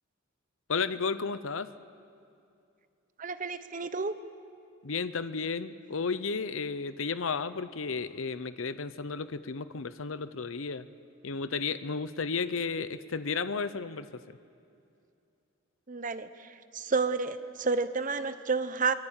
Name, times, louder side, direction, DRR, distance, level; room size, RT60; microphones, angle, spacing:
voice 1, 0.7-1.7 4.8-10.9 11.2-14.4, left 5 dB, 80° left, 13 dB, 0.8 m, -33 dB
voice 2, 3.2-4.1 15.9-18.9, right 4 dB, 40° right, 12 dB, 0.9 m, -30 dB
23.5 x 22.0 x 8.9 m, 2.5 s
head